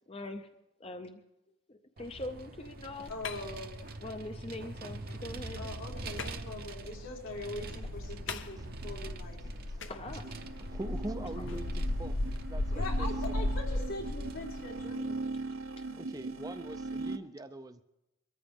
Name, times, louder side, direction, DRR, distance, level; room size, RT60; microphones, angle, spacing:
voice 1, 0.1-0.5 0.8-1.2 1.7-3.1 4.0-5.7 9.9-10.3 11.4-11.6, left 2 dB, 25° left, 7 dB, 0.6 m, -42 dB
Vehicle, 2.0-15.2, right 2 dB, 45° right, 0.8 m, -46 dB
sound 1, 2.7-14.8, left 1 dB, 60° left, 0.8 m, -37 dB
voice 2, 3.1-3.8 5.1-5.2 5.6-9.4 9.9-10.5 12.7-15.2, left 2 dB, 80° left, -2 dB, 3.5 m, -42 dB
voice 3, 9.4-9.9 10.7-12.2 12.5-13.1 15.9-17.8, right 2 dB, 15° right, 9 dB, 0.5 m, -43 dB
sound 2, 10.2-17.2, right 3 dB, 75° right, 0.9 m, -40 dB
23.0 x 14.0 x 3.6 m, 0.92 s
head